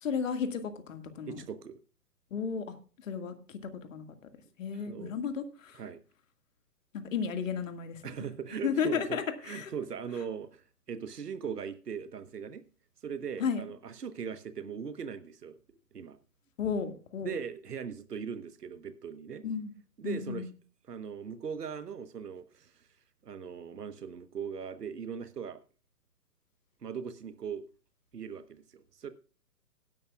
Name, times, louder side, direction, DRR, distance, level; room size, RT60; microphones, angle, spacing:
voice 1, 0.0-0.6 0.9-1.4 2.3-2.7 3.0-3.6 3.9-4.1 4.6-5.8 6.9-8.0 8.6-9.7 13.4-13.6 16.6-17.3 19.4-19.7 20.0-20.5, left 6 dB, 50° left, 2.0 m, -33 dB
voice 2, 1.3-1.8 4.7-5.1 5.7-6.0 8.0-10.6 10.9-12.6 13.0-15.6 15.9-16.2 17.2-19.4 20.0-20.5 20.9-22.9 23.2-25.6 26.8-27.6 28.1-29.1, right 7 dB, 70° right, 1.3 m, -39 dB
17.0 x 10.5 x 2.4 m
figure-of-eight pair, 125°, 48 cm